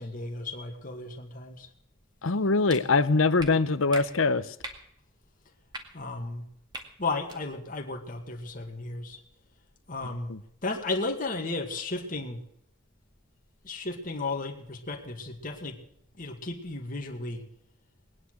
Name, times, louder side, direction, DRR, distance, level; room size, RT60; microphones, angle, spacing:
voice 1, 0.0-1.7 5.9-6.5 7.0-9.2 9.9-10.3 10.6-12.4 13.6-15.8 16.2-17.5, left 3 dB, 45° left, 2 dB, 2.1 m, -34 dB
voice 2, 2.2-4.5 10.3-10.4, left 3 dB, 90° left, 14 dB, 0.9 m, -23 dB
sound 1, 2.7-2.8 3.4-3.5 3.9-4.0 4.6-4.8 5.7-5.8 6.7-6.8 7.2-7.4, right 2 dB, 20° right, 2.1 m, -39 dB
20.5 x 10.0 x 6.4 m, 0.74 s
head